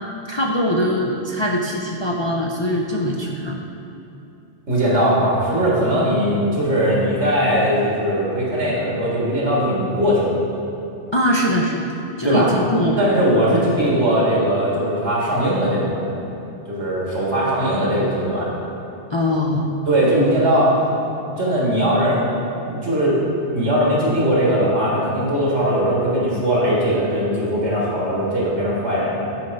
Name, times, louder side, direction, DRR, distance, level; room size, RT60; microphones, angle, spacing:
voice 1, 0.3-3.6 11.1-11.9 12.2-13.4 19.1-19.8, equal, 40° left, -2 dB, 0.4 m, -22 dB
voice 2, 4.7-10.4 12.2-12.5 13.0-16.2 16.7-18.5 19.9-20.7 21.2-22.2 22.5-23.2 23.5-29.3, equal, 90° right, -5 dB, 2.1 m, -19 dB
8.8 x 4.3 x 5.3 m, 2.9 s
omnidirectional pair, 1.1 m